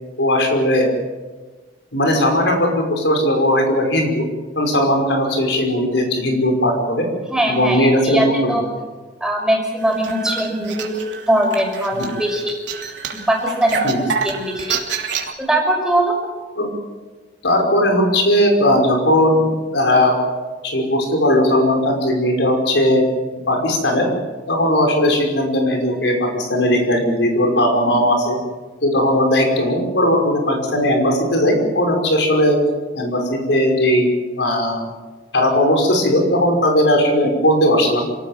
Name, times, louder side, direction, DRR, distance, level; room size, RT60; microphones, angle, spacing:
voice 1, 0.2-0.9 1.9-4.2 4.6-7.1 7.5-8.6 11.9-12.1 13.8-14.0 16.6-16.7 17.4-19.4 19.7-20.2 20.6-23.1 23.5-24.1 24.5-28.4 28.8-32.6 32.9-34.8 35.3-38.0, left 1 dB, 80° left, 2 dB, 5.5 m, -17 dB
voice 2, 7.3-8.6 9.2-11.0 11.3-12.6 13.3-14.8 15.4-16.2, right 1 dB, 5° right, 0 dB, 5.8 m, -20 dB
sound 1, 9.8-15.3, right 5 dB, 85° right, 3.1 m, -27 dB
27.5 x 18.0 x 7.4 m, 1.3 s
head